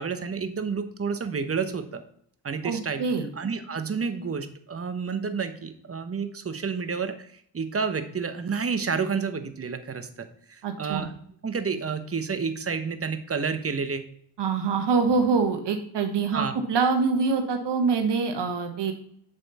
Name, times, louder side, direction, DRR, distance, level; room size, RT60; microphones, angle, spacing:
voice 1, 0.0-2.0 2.4-3.0 3.3-11.1 11.4-14.0 16.3-16.5, right 5 dB, 30° right, 10 dB, 1.0 m, -30 dB
voice 2, 2.6-3.3 10.6-11.1 14.4-18.9, right 5 dB, 55° right, 5 dB, 1.5 m, -25 dB
7.5 x 5.3 x 4.2 m, 0.65 s
hypercardioid pair, 55°, 50 cm